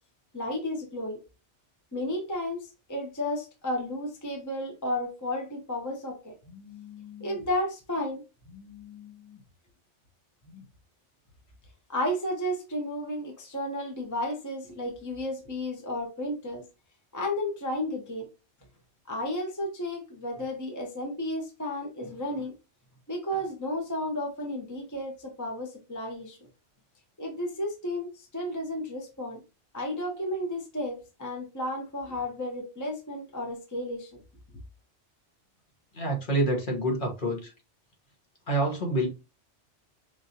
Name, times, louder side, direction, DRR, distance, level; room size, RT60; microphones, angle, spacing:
voice 1, 0.3-1.2 1.9-9.4 10.5-10.6 11.9-16.6 17.1-18.3 19.1-22.5 23.1-26.4 27.2-29.4 29.7-34.1, left 1 dB, 15° left, 0.9 m, -33 dB
voice 2, 35.9-37.5 38.5-39.1, right 1 dB, 45° left, 1.3 m, -27 dB
5.1 x 2.6 x 2.8 m
omnidirectional pair, 1.2 m